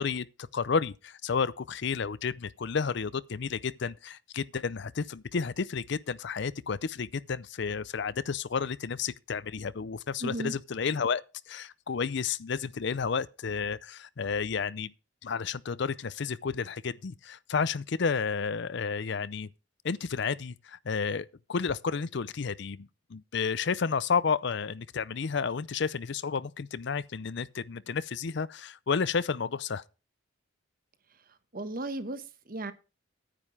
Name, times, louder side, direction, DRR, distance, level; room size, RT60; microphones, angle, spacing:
voice 1, 0.0-14.9 15.2-19.5 19.8-29.8, left 5 dB, 55° left, 0.5 m, -31 dB
voice 2, 10.2-10.5 31.5-32.7, right 2 dB, 45° right, 1.1 m, -35 dB
9.9 x 9.3 x 4.8 m
head